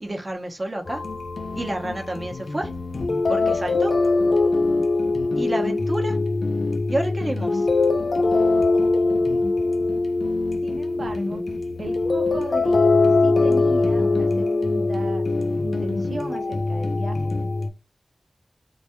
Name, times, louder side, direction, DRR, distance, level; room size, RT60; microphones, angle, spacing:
voice 1, 0.0-1.1 1.5-2.7 3.3-3.9 5.3-6.2 6.9-7.7, right 1 dB, 35° right, 0.6 m, -29 dB
sound 1, 0.9-17.7, left 3 dB, 80° left, 0.4 m, -22 dB
voice 2, 10.6-11.4 11.8-15.3 15.6-17.3, right 2 dB, 75° right, 0.6 m, -35 dB
2.2 x 2.1 x 2.8 m
wide cardioid pair, 80°, 0 cm